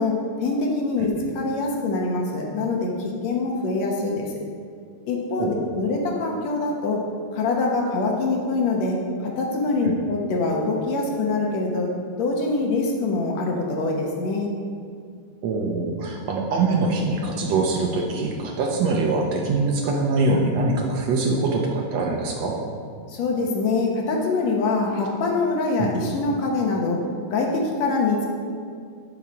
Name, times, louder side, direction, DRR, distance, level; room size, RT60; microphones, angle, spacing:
voice 1, 0.0-4.4 5.1-7.0 7.3-11.9 12.2-14.5 23.1-28.3, left 3 dB, 65° left, 0 dB, 2.1 m, -24 dB
voice 2, 15.4-22.6 25.8-25.9, right 3 dB, 70° right, 0 dB, 1.8 m, -23 dB
10.5 x 5.9 x 5.2 m, 2.2 s
omnidirectional pair, 3.5 m